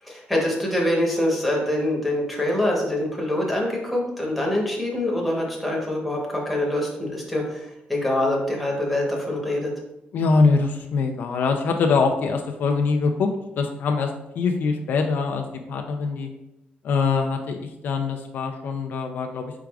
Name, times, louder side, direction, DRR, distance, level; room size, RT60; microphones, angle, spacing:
voice 1, 0.0-9.7, left 1 dB, ahead, -3 dB, 1.0 m, -25 dB
voice 2, 10.1-13.3 13.6-14.1 14.4-16.3 16.8-19.5, left 4 dB, 60° left, 4 dB, 0.4 m, -23 dB
4.8 x 4.6 x 2.3 m, 0.89 s
cardioid pair, 170°, 4 cm